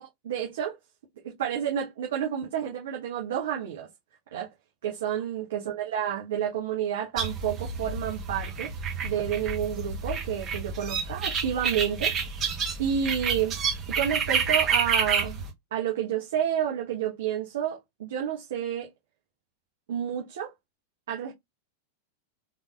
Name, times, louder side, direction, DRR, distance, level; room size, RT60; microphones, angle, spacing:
voice 1, 0.0-0.8 1.2-3.9 4.3-4.5 4.8-8.7 9.0-12.1 12.8-13.6 13.9-15.4 15.7-18.9 19.9-20.5 21.1-21.3, right 9 dB, 60° right, 1.1 m, -30 dB
sound 1, 7.2-15.5, right 5 dB, 30° right, 1.1 m, -29 dB
3.6 x 3.1 x 2.3 m
figure-of-eight pair, 90°, 0 cm